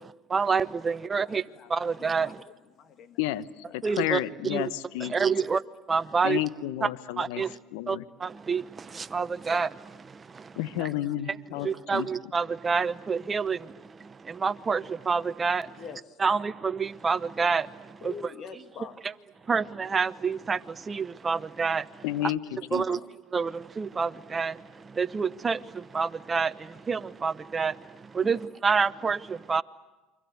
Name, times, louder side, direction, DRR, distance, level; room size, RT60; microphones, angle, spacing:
voice 1, 0.3-1.4 1.7-2.4 3.8-4.7 5.0-5.6 5.9-6.4 6.8-6.9 7.2-7.5 7.9-10.5 10.8-10.9 11.6-15.8 16.2-18.1 19.5-22.0 22.7-23.0 23.3-29.6, right 5 dB, 25° right, 0.9 m, -28 dB
voice 2, 1.2-1.7 2.0-3.2 3.7-3.8 5.4-5.6 10.9-11.0 11.5-11.8 15.8-16.2 18.0-19.1 22.6-23.1 28.2-28.4, left 6 dB, 50° left, 2.0 m, -45 dB
voice 3, 3.7-5.3 6.2-7.4 7.7-8.0 10.6-12.1 22.0-22.8, left 14 dB, 80° left, 0.9 m, -31 dB
28.5 x 23.5 x 8.1 m
supercardioid pair, 90°, 0 cm